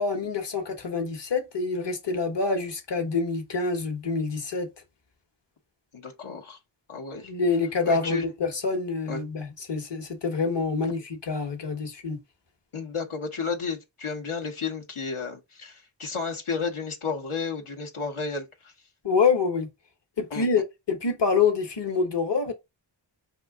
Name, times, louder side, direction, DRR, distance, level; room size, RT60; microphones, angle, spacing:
voice 1, 0.0-4.7 7.2-12.2 19.0-19.7 20.2-22.5, left 4 dB, 60° left, 1.1 m, -26 dB
voice 2, 5.9-6.6 6.9-7.3 7.8-8.2 9.1-9.2 12.7-18.4 20.3-20.4, left 5 dB, 85° left, 1.1 m, -32 dB
5.5 x 2.7 x 3.5 m
wide cardioid pair, 50°, 48 cm